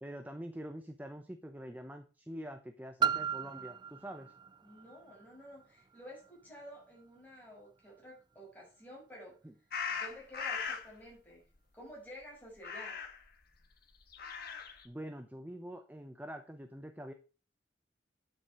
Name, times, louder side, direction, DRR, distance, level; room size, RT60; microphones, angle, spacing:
voice 1, 0.0-4.3 9.4-9.5 14.8-17.1, equal, 10° right, 6 dB, 0.8 m, -45 dB
Piano, 3.0-8.4 9.2-9.3, right 7 dB, 25° right, 0.4 m, -38 dB
voice 2, 4.6-9.4 9.9-11.4 11.7-13.0, equal, 10° left, -4 dB, 6.5 m, -51 dB
sound 1, 9.7-10.9 12.6-13.3 14.0-14.9, left 6 dB, 55° left, 1.6 m, -39 dB
9.5 x 7.6 x 4.8 m, 0.36 s
head